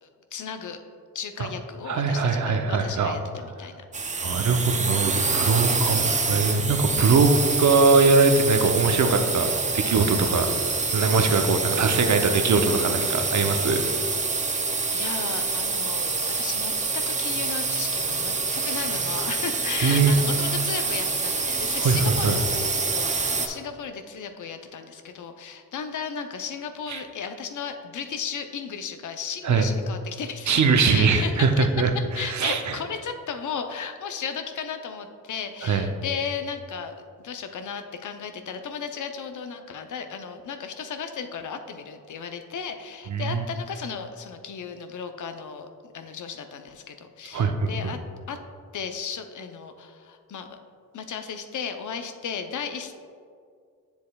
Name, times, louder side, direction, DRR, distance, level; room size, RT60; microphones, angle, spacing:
voice 1, 0.0-0.8 1.1-3.8 14.9-31.7 31.9-48.0 48.3-48.4 48.7-50.5 50.9-52.9, left 6 dB, 60° left, 7 dB, 0.6 m, -35 dB
voice 2, 1.9-3.1 4.2-7.3 7.6-10.5 10.9-13.8 19.8-20.1 21.8-22.4 26.9-27.0 29.4-29.7 30.5-31.9 32.2-32.7 35.6-35.9 43.1-43.5 47.3-47.7, right 4 dB, 55° right, 6 dB, 0.7 m, -21 dB
sound 1, 3.9-23.5, right 4 dB, 20° right, 0.6 m, -26 dB
7.6 x 6.9 x 2.3 m, 2.2 s
cardioid pair, 60°, 34 cm